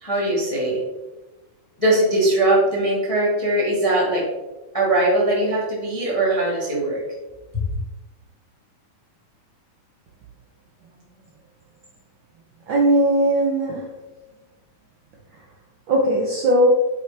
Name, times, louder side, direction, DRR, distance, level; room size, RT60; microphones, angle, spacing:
voice 1, 0.0-0.8 1.8-4.3 4.7-7.0 7.5-7.6, right 1 dB, 15° left, -5 dB, 1.1 m, -20 dB
voice 2, 12.7-13.8 15.9-16.7, right 1 dB, 90° right, -2 dB, 1.0 m, -18 dB
9.0 x 5.9 x 3.4 m, 1.1 s
omnidirectional pair, 3.8 m